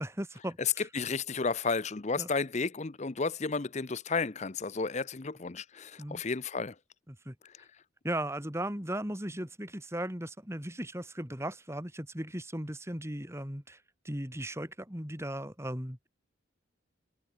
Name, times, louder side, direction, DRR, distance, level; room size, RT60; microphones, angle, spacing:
voice 1, 0.0-0.9 2.2-2.3 6.0-6.2 7.1-7.4 8.0-16.1, right 1 dB, 15° right, 3.4 m, -37 dB
voice 2, 0.6-6.7 7.4-7.5, left 4 dB, 35° left, 0.7 m, -32 dB
open air
head